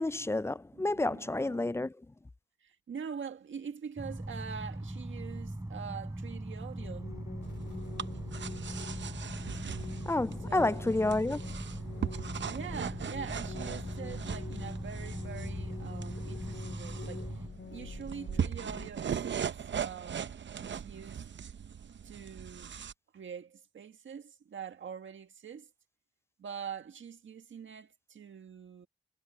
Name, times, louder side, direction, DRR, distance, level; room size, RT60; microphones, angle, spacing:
voice 1, 0.0-1.9 10.1-11.4, left 2 dB, 15° left, 0.3 m, -30 dB
voice 2, 0.7-1.9 2.6-7.2 10.4-11.1 12.5-20.3 20.6-21.2 22.0-22.8 23.1-25.7 26.4-28.9, right 7 dB, 85° right, 1.7 m, -44 dB
sound 1, 4.0-17.5, right 1 dB, 15° right, 6.5 m, -41 dB
sound 2, 6.8-18.9, left 5 dB, 65° left, 3.3 m, -45 dB
sound 3, 7.4-22.9, right 8 dB, 70° right, 0.8 m, -40 dB
cardioid pair, 45°, 19 cm